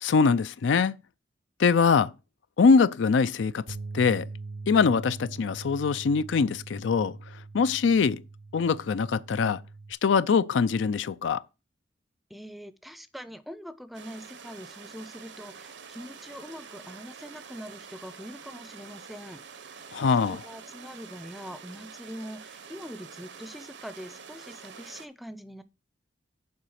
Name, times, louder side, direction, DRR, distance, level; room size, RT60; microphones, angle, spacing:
voice 1, 0.0-1.0 1.6-2.1 2.6-3.6 3.9-4.3 4.7-7.2 7.5-8.2 8.5-9.6 10.0-11.4 19.9-20.4, left 5 dB, 85° left, 0.4 m, -23 dB
sound 1, 3.7-9.9, right 3 dB, 55° right, 0.5 m, -42 dB
voice 2, 12.3-19.4 19.7-20.0 20.3-25.6, equal, ahead, 0.5 m, -43 dB
sound 2, 13.9-25.1, right 6 dB, 75° right, 0.9 m, -47 dB
7.1 x 4.9 x 6.3 m
head